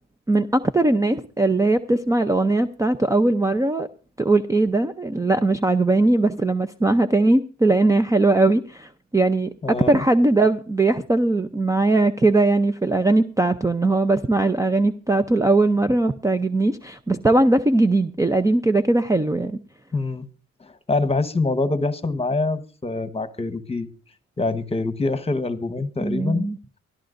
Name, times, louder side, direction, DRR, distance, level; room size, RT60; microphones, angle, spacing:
voice 1, 0.3-3.9 4.2-19.6 26.0-26.6, right 2 dB, 10° right, 10 dB, 0.6 m, -20 dB
voice 2, 9.6-10.0 19.9-20.2 20.6-23.9 24.4-26.5, left 3 dB, 20° left, 12 dB, 1.2 m, -25 dB
23.0 x 13.0 x 2.6 m, 0.35 s
cardioid pair, 90°, 30 cm